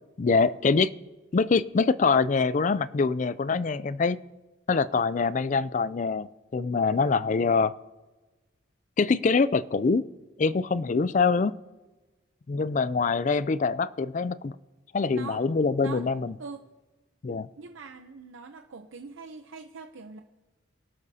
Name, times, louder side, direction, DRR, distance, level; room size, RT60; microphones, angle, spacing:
voice 1, 0.2-0.9 1.3-4.2 4.7-7.7 9.0-10.0 10.4-11.5 12.5-14.5 14.9-16.3 17.2-17.5, left 4 dB, 40° left, 17 dB, 0.4 m, -24 dB
voice 2, 15.1-15.4 15.8-16.1 16.4-16.6 17.6-20.2, right 4 dB, 85° right, 6 dB, 0.7 m, -42 dB
23.5 x 12.0 x 2.8 m, 1.2 s
head